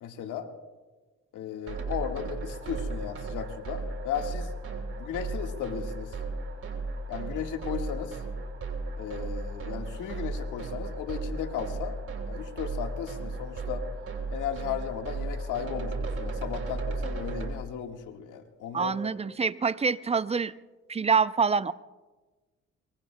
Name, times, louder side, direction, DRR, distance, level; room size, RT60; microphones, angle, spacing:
voice 1, 0.0-0.5 1.3-4.5 5.0-6.1 7.1-8.2 9.0-12.0 12.3-13.8 14.3-18.9, left 8 dB, 85° left, 5 dB, 1.6 m, -35 dB
sound 1, 1.7-17.5, right 3 dB, 50° right, 3.2 m, -35 dB
voice 2, 18.7-20.5 20.9-21.7, right 5 dB, 20° right, 16 dB, 0.4 m, -26 dB
24.0 x 22.5 x 2.2 m, 1.3 s
cardioid pair, 90°, 30 cm